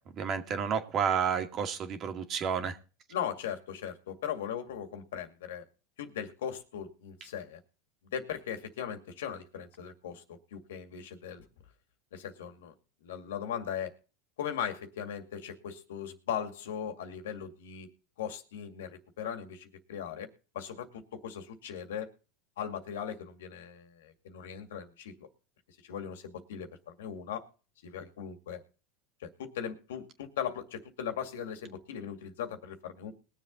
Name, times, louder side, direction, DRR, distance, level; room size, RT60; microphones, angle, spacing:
voice 1, 0.2-2.8, right 7 dB, 40° right, 6 dB, 2.2 m, -30 dB
voice 2, 3.1-5.6 6.0-7.6 8.1-11.4 12.1-12.7 13.0-13.9 14.4-17.9 18.2-20.3 20.5-22.1 22.6-25.1 25.8-27.5 27.8-28.6 29.2-33.1, left 8 dB, 85° left, 7 dB, 2.1 m, -38 dB
21.5 x 7.3 x 4.0 m, 0.36 s
supercardioid pair, 110°, 0 cm